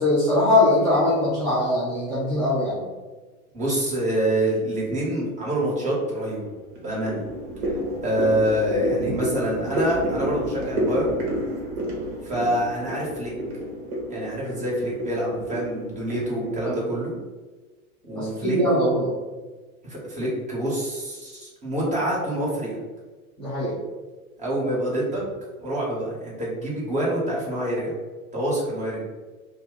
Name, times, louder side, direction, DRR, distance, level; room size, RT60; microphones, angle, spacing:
voice 1, 0.0-2.9 16.6-16.7 18.1-19.1 23.4-23.8, left 1 dB, ahead, -10 dB, 1.0 m, -21 dB
voice 2, 3.5-6.4 6.8-7.2 7.7-11.1 12.2-13.3 14.1-17.1 18.0-18.6 19.8-22.8 24.4-25.2 25.6-27.9 28.3-29.0, right 1 dB, 15° right, -5 dB, 1.2 m, -26 dB
sound 1, 5.1-5.6 6.1-16.8, equal, 55° right, 1.0 m, -30 dB
2.6 x 2.1 x 3.8 m, 1.3 s
figure-of-eight pair, 90°, 43 cm